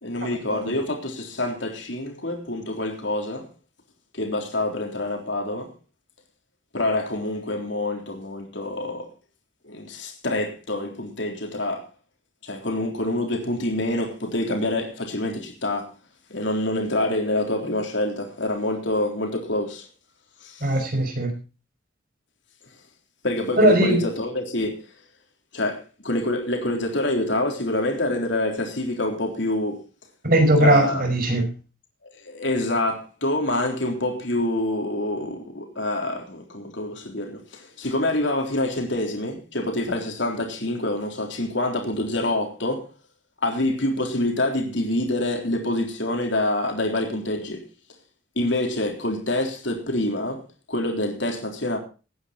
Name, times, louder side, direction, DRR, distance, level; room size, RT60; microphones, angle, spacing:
voice 1, 0.0-3.5 4.1-5.7 6.7-9.1 9.6-11.9 12.4-15.9 16.3-19.8 20.4-20.8 23.2-24.9 25.5-29.8 30.6-31.1 32.0-42.9 43.4-47.6 48.3-50.4 50.7-51.8, left 1 dB, 60° left, 3.6 m, -26 dB
voice 2, 20.6-21.3 23.6-24.0 30.2-31.4, right 1 dB, 45° right, 5.2 m, -19 dB
18.0 x 9.7 x 4.2 m
head